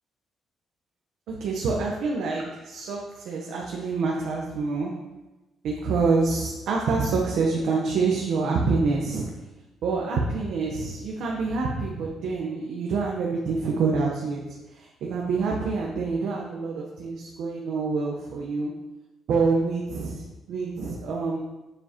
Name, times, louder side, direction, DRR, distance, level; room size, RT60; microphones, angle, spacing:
voice 1, 1.3-5.0 5.6-9.4 9.8-18.8 19.3-21.4, right 4 dB, 70° right, -1 dB, 0.9 m, -27 dB
7.2 x 7.0 x 2.9 m, 1.1 s
cardioid pair, 160°, 0 cm